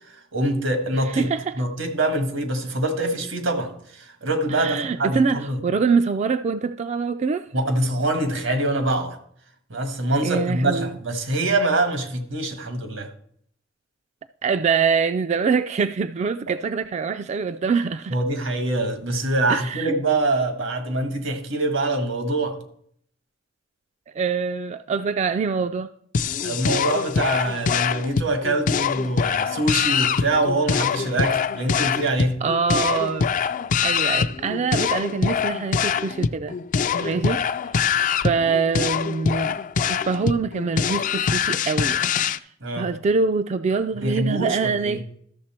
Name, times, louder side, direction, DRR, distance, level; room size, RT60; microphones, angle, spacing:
voice 1, 0.1-5.6 7.5-9.2 9.7-13.1 16.5-16.6 18.1-22.6 26.4-32.4 34.1-34.2 36.9-37.2 42.6-42.9 44.0-45.0, right 2 dB, 90° right, 1.6 m, -24 dB
voice 2, 1.1-1.5 4.5-7.5 10.2-10.9 14.4-18.2 19.5-19.9 24.1-25.9 32.4-33.3 33.8-36.5 36.9-37.4 38.2-39.6 39.9-42.1 42.8-45.0, right 5 dB, 35° right, 0.3 m, -24 dB
sound 1, 26.1-42.4, left 6 dB, 45° left, 0.4 m, -24 dB
13.0 x 6.7 x 4.3 m
head